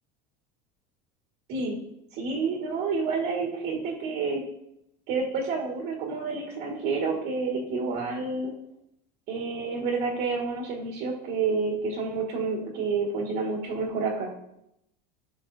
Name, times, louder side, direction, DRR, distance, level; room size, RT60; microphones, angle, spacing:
voice 1, 2.1-4.4 5.1-8.5 9.3-14.3, right 4 dB, 55° right, -1 dB, 2.0 m, -29 dB
15.0 x 5.9 x 2.8 m, 0.81 s
supercardioid pair, 140°, 21 cm